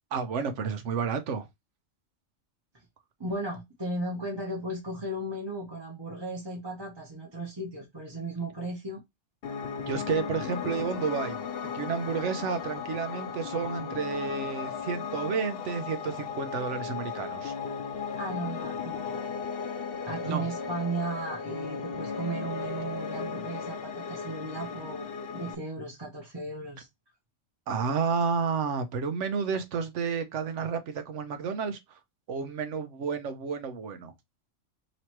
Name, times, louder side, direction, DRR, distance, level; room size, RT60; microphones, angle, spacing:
voice 1, 0.1-1.5 9.8-11.4 11.7-17.5 20.2-20.4 27.7-32.0 32.3-34.1, right 5 dB, 75° right, 1.0 m, -31 dB
voice 2, 3.2-9.0 18.2-19.2 20.0-26.9, right 2 dB, 20° right, 0.9 m, -36 dB
Piano, 9.4-25.5, left 6 dB, 60° left, 0.7 m, -36 dB
3.1 x 3.0 x 4.3 m
omnidirectional pair, 1.3 m